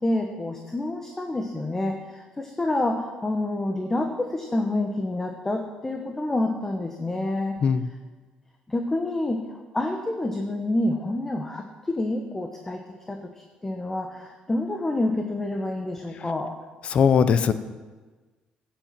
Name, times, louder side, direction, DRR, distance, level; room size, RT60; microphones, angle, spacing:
voice 1, 0.0-7.6 8.7-12.8 13.1-13.2 13.6-16.5, left 1 dB, 15° left, 4 dB, 1.2 m, -28 dB
voice 2, 16.9-17.5, left 6 dB, 45° left, 12 dB, 0.9 m, -19 dB
15.0 x 9.0 x 7.6 m, 1.3 s
cardioid pair, 125°, 3 cm